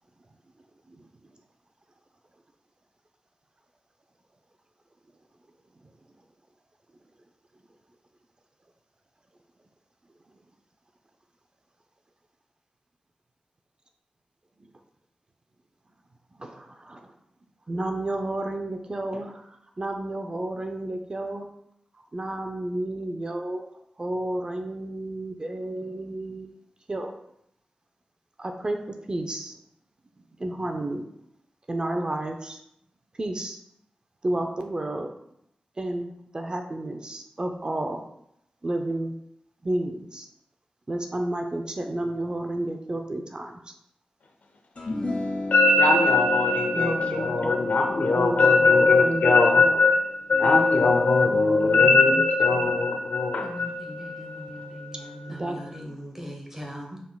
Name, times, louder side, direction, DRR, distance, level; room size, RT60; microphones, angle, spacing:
voice 1, 16.4-17.1 17.7-21.4 22.1-23.7 24.0-26.5 26.9-27.1 28.4-28.8 29.1-29.6 30.4-31.1 31.7-32.6 33.2-33.6 34.2-35.1 35.8-38.0 38.6-39.1 39.6-40.3 40.9-43.6 46.7-47.6 48.1-49.9 50.4-52.9 55.3-55.6, right 1 dB, 35° right, 0.5 m, -31 dB
sound 1, 44.8-51.3, left 2 dB, 55° left, 1.6 m, -36 dB
voice 2, 45.5-50.0 50.3-55.1, left 3 dB, 85° left, 0.7 m, -20 dB
voice 3, 53.4-57.0, equal, 15° right, 1.0 m, -40 dB
5.7 x 3.6 x 2.3 m
wide cardioid pair, 105°, 3 cm